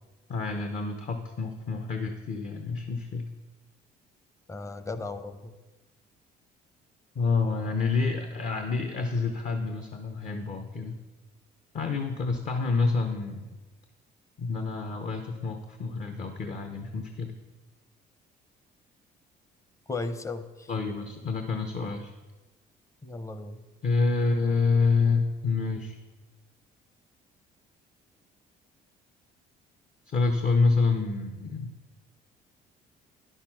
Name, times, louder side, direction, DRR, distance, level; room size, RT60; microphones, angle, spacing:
voice 1, 0.3-3.3 7.1-10.9 11.7-13.4 14.4-17.3 20.7-22.2 23.8-26.0 30.1-31.7, left 4 dB, 45° left, 6 dB, 0.9 m, -28 dB
voice 2, 4.5-5.5 19.9-20.7 23.0-23.6, left 3 dB, 20° left, 11 dB, 0.7 m, -36 dB
9.8 x 6.8 x 5.9 m, 1.2 s
cardioid pair, 110°, 17 cm